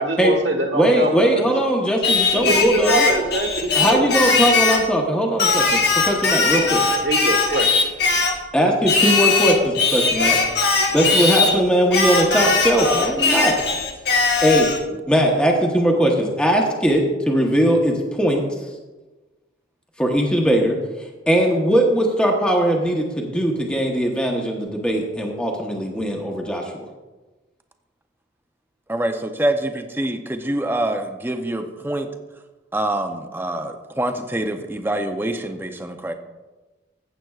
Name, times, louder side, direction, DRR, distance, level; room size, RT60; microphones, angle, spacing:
voice 1, 0.0-1.4 2.3-4.1 6.4-7.7, right 2 dB, 65° right, 4 dB, 1.5 m, -24 dB
voice 2, 0.7-3.1 3.7-5.8 6.1-6.8 8.5-10.4 10.9-13.6 14.4-14.7 15.1-18.4 20.0-20.8 21.3-26.9, equal, 5° left, 0 dB, 1.0 m, -19 dB
Singing, 2.0-4.9 5.4-8.4 8.9-11.6 11.9-14.8, left 4 dB, 55° left, 1.1 m, -19 dB
voice 3, 28.9-32.1 32.7-36.1, right 1 dB, 10° right, 6 dB, 0.6 m, -25 dB
15.0 x 7.9 x 2.4 m, 1.2 s
head